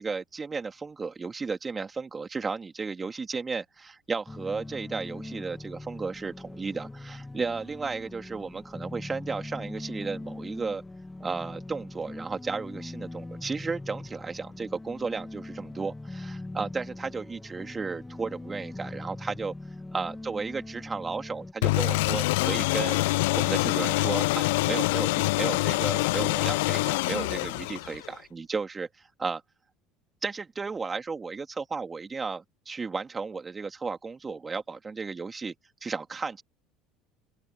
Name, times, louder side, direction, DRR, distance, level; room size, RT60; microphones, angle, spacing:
voice 1, 0.0-10.8 11.2-19.5 19.9-23.0 23.4-29.4 30.2-35.5 35.8-36.4, right 4 dB, 25° right, 3.3 m, -34 dB
sound 1, 4.3-21.5, left 2 dB, 10° left, 2.4 m, -41 dB
sound 2, 21.6-28.1, left 22 dB, 70° left, 0.4 m, -25 dB
open air
hypercardioid pair, 70°, 0 cm